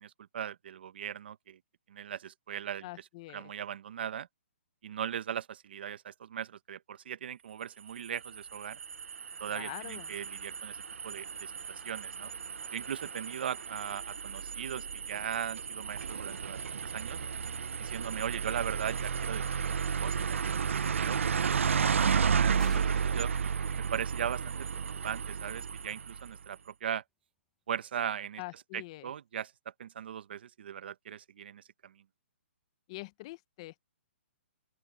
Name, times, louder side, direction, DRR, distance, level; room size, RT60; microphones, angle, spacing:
voice 1, 0.0-1.6 1.9-2.9 3.3-4.3 4.8-8.8 9.4-10.8 11.0-12.3 12.7-17.2 17.8-20.4 20.7-21.3 21.6-23.3 23.8-24.5 25.0-27.0 27.7-28.4 28.7-29.5 29.8-31.9, right 9 dB, 55° right, 1.1 m, -39 dB
voice 2, 2.8-3.5 9.5-10.1 28.4-29.1 32.9-33.8, left 20 dB, 25° left, 0.7 m, -44 dB
sound 1, 7.9-26.4, right 6 dB, 90° right, 0.6 m, -33 dB
sound 2, 12.6-15.3 17.9-18.0 18.5-18.6 19.0-19.1 19.4-20.0 21.3-21.4 22.6-26.1, left 1 dB, ahead, 0.9 m, -58 dB
open air
hypercardioid pair, 165°, 7 cm